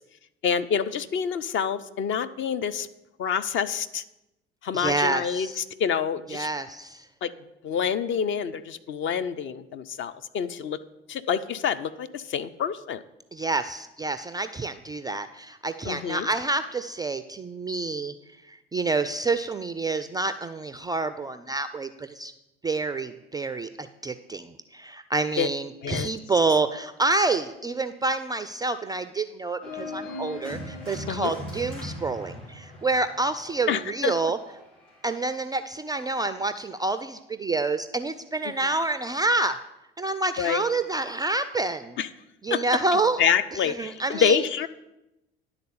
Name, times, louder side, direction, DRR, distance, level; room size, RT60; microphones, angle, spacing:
voice 1, 0.4-2.9 3.2-4.0 4.6-6.5 7.2-7.3 7.6-10.8 11.1-13.0 15.8-16.3 25.4-25.5 25.8-26.1 31.1-31.3 33.7-34.1 38.4-38.5 40.4-40.6 42.0-42.1 42.5-42.6 42.9-44.7, left 7 dB, 40° left, 12 dB, 0.5 m, -27 dB
voice 2, 4.7-5.6 6.3-7.1 13.3-18.1 18.5-22.3 22.6-34.4 35.0-39.6 40.0-42.0 42.4-43.2 43.6-44.4, right 3 dB, 15° right, 10 dB, 0.3 m, -28 dB
Organ, 29.6-35.3, left 1 dB, 65° left, 3.9 m, -39 dB
10.5 x 4.0 x 7.0 m, 0.92 s
figure-of-eight pair, 60°, 31 cm